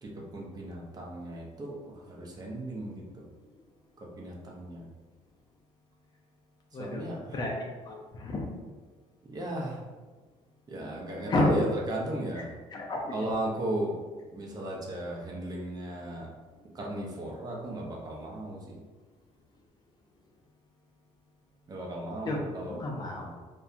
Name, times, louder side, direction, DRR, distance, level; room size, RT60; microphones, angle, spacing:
voice 1, 0.0-3.3 4.0-4.8 6.7-7.4 9.2-9.8 10.7-12.5 13.1-14.0 14.3-16.3 16.7-18.8 21.7-22.8 23.2-23.4, right 1 dB, 30° right, -2 dB, 0.5 m, -36 dB
voice 2, 6.7-7.0 7.3-7.5 7.9-8.5 11.3-11.5 12.7-13.1 22.3-22.4 22.7-23.3, left 2 dB, 35° left, 0 dB, 0.4 m, -30 dB
2.7 x 2.2 x 2.4 m, 1.3 s
cardioid pair, 130°, 13 cm